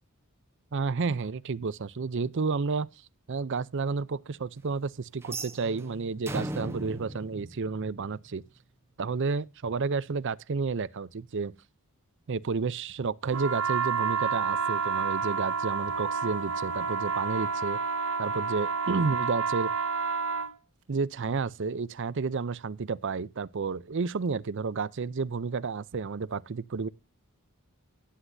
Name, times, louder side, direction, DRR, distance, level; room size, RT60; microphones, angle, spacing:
voice 1, 0.7-2.9 3.3-8.4 9.0-11.5 12.3-17.8 18.2-19.7 20.9-26.9, right 4 dB, 55° right, 0.5 m, -31 dB
sound 1, 5.2-8.3, right 1 dB, 10° right, 1.0 m, -38 dB
sound 2, 13.3-20.5, right 5 dB, 80° right, 1.8 m, -29 dB
16.0 x 9.9 x 2.6 m
head